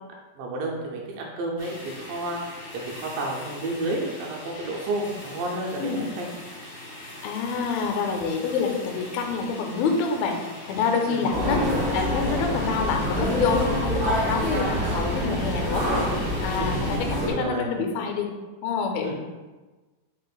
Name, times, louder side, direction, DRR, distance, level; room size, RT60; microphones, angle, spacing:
voice 1, 0.4-6.4 11.1-11.8 16.5-16.9 17.2-17.7 19.0-19.1, right 2 dB, 80° right, -1 dB, 2.2 m, -31 dB
sound 1, 1.6-17.0, left 1 dB, 70° left, 1.1 m, -41 dB
voice 2, 5.8-6.1 7.2-10.4 10.7-11.6 11.9-15.9 16.4-18.3 18.6-19.1, left 5 dB, 85° left, 3 dB, 2.3 m, -27 dB
sound 2, 11.3-17.3, equal, 60° right, 0.8 m, -26 dB
5.5 x 2.5 x 3.9 m, 1.2 s
omnidirectional pair, 4.2 m